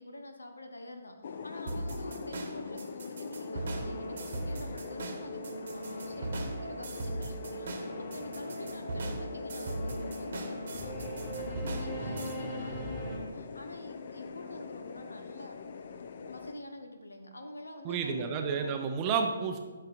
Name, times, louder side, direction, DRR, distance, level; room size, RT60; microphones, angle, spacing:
voice 1, 0.0-15.5 16.3-18.7, left 1 dB, 75° left, 5 dB, 0.9 m, -46 dB
sound 1, 1.2-16.5, left 5 dB, 45° left, 0.5 m, -43 dB
sound 2, 1.7-12.3, right 2 dB, 50° right, 1.1 m, -38 dB
Singing / Musical instrument, 3.3-13.2, right 1 dB, 25° left, 2.5 m, -41 dB
voice 2, 17.8-19.6, right 6 dB, 25° right, 4 dB, 0.6 m, -30 dB
11.5 x 5.6 x 2.5 m, 1.3 s
figure-of-eight pair, 135°, 0 cm